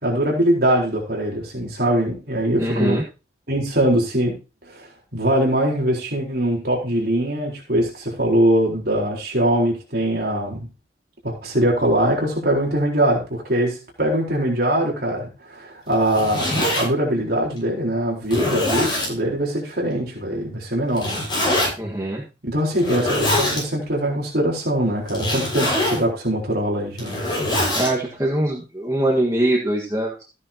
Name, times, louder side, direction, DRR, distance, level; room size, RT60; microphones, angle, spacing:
voice 1, 0.0-3.0 3.5-4.4 4.7-10.7 11.2-21.1 22.4-27.2, right 1 dB, 55° right, -2 dB, 4.2 m, -22 dB
voice 2, 2.6-3.0 21.8-22.2 27.7-30.2, right 1 dB, 15° right, -2 dB, 1.6 m, -22 dB
Zipper (clothing), 15.9-16.8 17.6-17.7 18.2-19.1 20.9-21.7 22.7-23.6 25.1-26.0 26.8-27.9, left 1 dB, 25° left, 7.0 m, -23 dB
14.5 x 9.7 x 2.9 m, 0.31 s
head